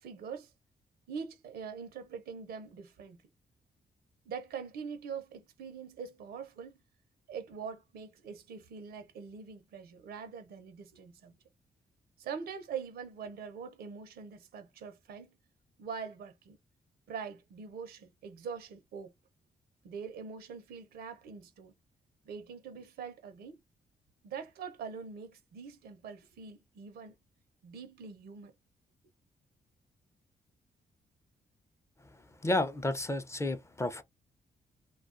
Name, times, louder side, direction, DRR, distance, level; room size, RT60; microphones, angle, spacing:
voice 1, 0.0-0.5 1.1-3.2 4.3-6.8 7.3-11.3 12.2-15.4 15.8-16.6 17.1-19.1 19.8-21.7 22.2-23.6 24.2-27.2 27.6-28.5, right 6 dB, 85° right, 0.6 m, -43 dB
voice 2, 32.4-34.0, left 2 dB, 15° left, 0.5 m, -31 dB
2.3 x 2.3 x 2.4 m
cardioid pair, 65°, 16 cm